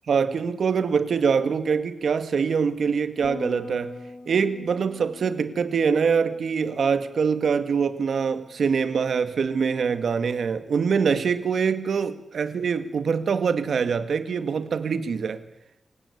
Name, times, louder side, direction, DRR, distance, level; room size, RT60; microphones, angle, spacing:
voice 1, 0.1-4.0 4.3-15.4, right 6 dB, 75° right, 1.9 m, -24 dB
Bass guitar, 3.2-9.5, left 4 dB, 55° left, 3.2 m, -45 dB
27.5 x 16.5 x 8.6 m
wide cardioid pair, 110°, 0 cm